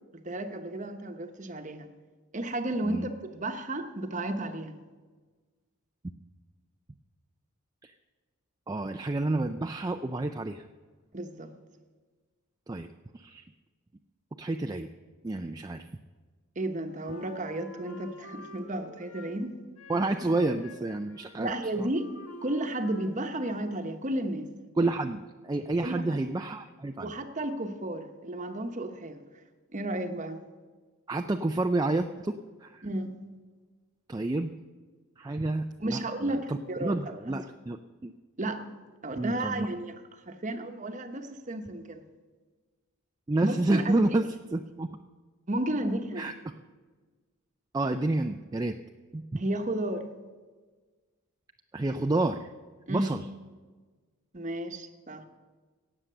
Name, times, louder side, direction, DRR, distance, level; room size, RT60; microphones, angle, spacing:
voice 1, 0.1-1.9 2.3-4.7 11.1-11.5 16.6-19.6 21.4-22.1 22.4-24.5 25.8-26.2 27.0-29.2 29.7-30.4 32.8-33.2 35.8-37.0 37.3-37.4 38.4-38.7 39.0-42.0 43.4-43.9 45.5-46.2 49.4-50.1 52.9-53.1 54.3-55.2, right 1 dB, 35° right, 7 dB, 1.0 m, -33 dB
voice 2, 8.7-10.6 12.7-12.9 13.1-13.4 14.4-14.9 15.2-15.9 19.9-21.9 24.8-27.1 31.1-32.8 34.1-34.5 35.2-38.1 39.2-39.7 43.3-45.0 46.2-46.5 47.7-48.8 49.1-49.4 51.7-52.5 52.9-53.2, right 2 dB, 15° right, 6 dB, 0.3 m, -30 dB
Wind instrument woodwind instrument, 17.0-19.4 19.8-23.8, left 2 dB, 75° left, 1.7 m, -47 dB
17.5 x 7.3 x 6.7 m, 1.4 s
head